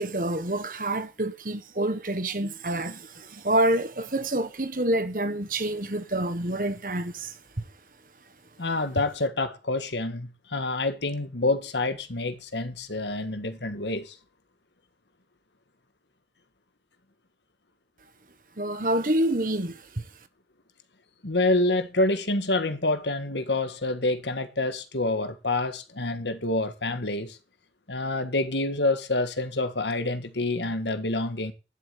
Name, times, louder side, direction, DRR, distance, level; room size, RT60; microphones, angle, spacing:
voice 1, 0.0-7.3 18.6-20.0, right 1 dB, 50° right, 1.5 m, -27 dB
voice 2, 8.6-14.1 21.2-27.4 27.9-31.5, left 2 dB, 85° left, 1.8 m, -27 dB
12.0 x 7.9 x 8.5 m
head